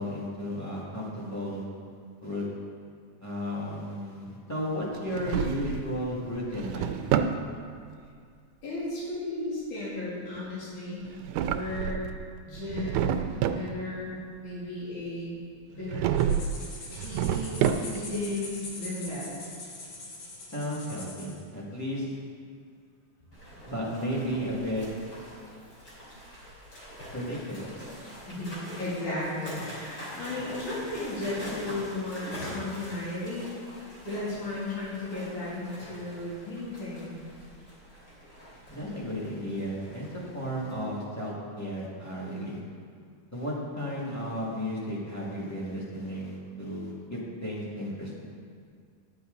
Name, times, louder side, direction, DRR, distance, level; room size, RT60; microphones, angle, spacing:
voice 1, 0.0-1.6 2.2-2.5 3.2-6.9 20.5-22.1 23.7-24.9 27.1-27.7 38.7-42.6 43.3-48.2, equal, 5° left, -6 dB, 1.4 m, -34 dB
Drawer open or close, 5.0-5.9 6.4-7.4 11.0-12.2 12.6-13.7 15.9-16.6 16.9-18.2, right 9 dB, 85° right, 2.0 m, -28 dB
voice 2, 8.6-11.0 11.5-12.0 12.4-15.4 15.7-16.3 16.9-19.4 28.2-33.5 34.0-37.2, left 2 dB, 80° left, -8 dB, 4.4 m, -35 dB
sound 1, 16.2-21.4, left 2 dB, 60° left, 2.5 m, -43 dB
sound 2, 23.3-40.7, equal, 40° left, 3.6 m, -44 dB
11.5 x 10.0 x 4.0 m, 2.2 s
omnidirectional pair, 3.4 m